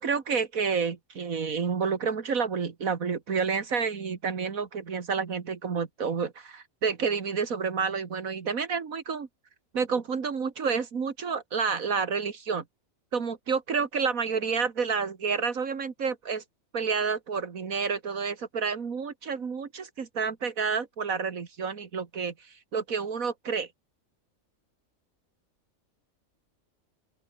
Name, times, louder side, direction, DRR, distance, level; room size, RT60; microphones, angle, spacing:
voice 1, 0.0-9.3 9.7-12.6 13.1-16.4 16.7-23.7, right 5 dB, 80° right, 2.2 m, -29 dB
open air
omnidirectional pair, 1.4 m